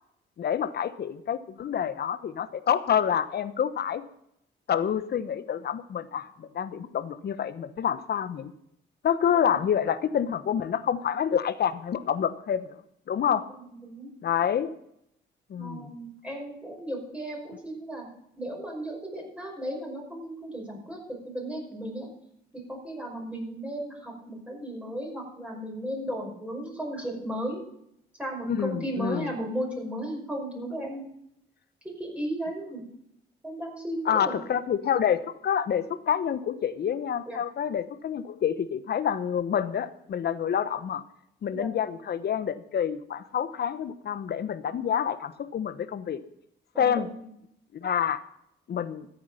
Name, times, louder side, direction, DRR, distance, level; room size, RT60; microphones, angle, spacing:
voice 1, 0.4-4.0 4.7-8.5 9.0-12.8 13.1-13.4 14.2-14.7 15.5-15.9 28.5-29.3 34.0-41.0 41.4-46.2 46.8-47.1 47.7-48.2 48.7-49.1, left 8 dB, 55° left, 13 dB, 1.0 m, -28 dB
voice 2, 13.5-14.1 15.5-18.1 18.4-22.1 22.5-27.6 28.2-31.1 31.8-32.8 33.4-34.4 37.3-37.4 41.5-41.7 46.7-47.1, right 1 dB, 5° right, -1 dB, 5.6 m, -35 dB
14.0 x 8.6 x 5.6 m, 0.74 s
cardioid pair, 90°, 20 cm